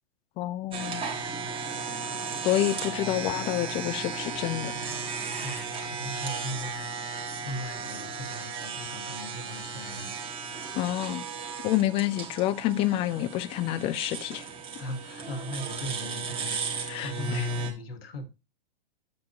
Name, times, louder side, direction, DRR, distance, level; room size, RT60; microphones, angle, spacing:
voice 1, 0.4-1.0 2.4-4.7 10.8-11.2 11.6-14.4 16.5-16.6 16.9-17.5, left 14 dB, 20° left, 0.4 m, -28 dB
sound 1, 0.7-17.7, right 4 dB, 20° right, 1.6 m, -35 dB
voice 2, 5.4-6.9 7.4-10.1 14.8-18.3, left 1 dB, 80° left, 1.7 m, -39 dB
7.8 x 7.0 x 2.9 m
hypercardioid pair, 135°, 29 cm